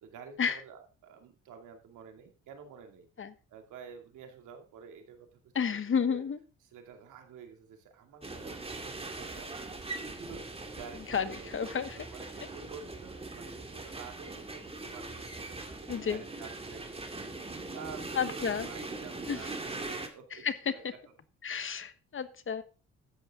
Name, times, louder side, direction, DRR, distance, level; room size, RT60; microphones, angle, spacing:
voice 1, 0.0-3.1 3.5-5.5 6.1-6.2 6.7-12.3 12.5-17.2 17.7-20.4 20.7-20.8, right 6 dB, 80° right, 4 dB, 2.6 m, -50 dB
voice 2, 5.5-6.4 11.1-12.0 15.9-16.2 18.1-18.7 19.3-19.5 20.3-20.7 21.4-22.6, left 6 dB, 40° left, 12 dB, 1.2 m, -31 dB
sound 1, 8.2-20.1, right 2 dB, 20° right, 2.1 m, -41 dB
13.0 x 9.1 x 3.8 m, 0.35 s
cardioid pair, 90°, 30 cm